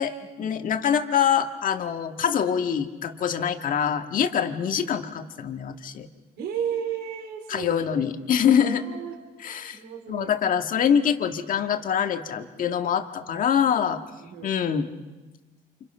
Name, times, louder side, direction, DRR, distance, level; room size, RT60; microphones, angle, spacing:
voice 1, 0.0-6.1 7.5-8.8 9.4-9.8 10.1-14.0 14.4-14.9, left 8 dB, 55° left, 6 dB, 1.8 m, -24 dB
voice 2, 6.4-7.7 8.6-9.2 9.7-10.3 14.2-14.5, right 8 dB, 75° right, 3 dB, 4.3 m, -33 dB
29.0 x 28.5 x 5.6 m, 1.2 s
cardioid pair, 110°, 17 cm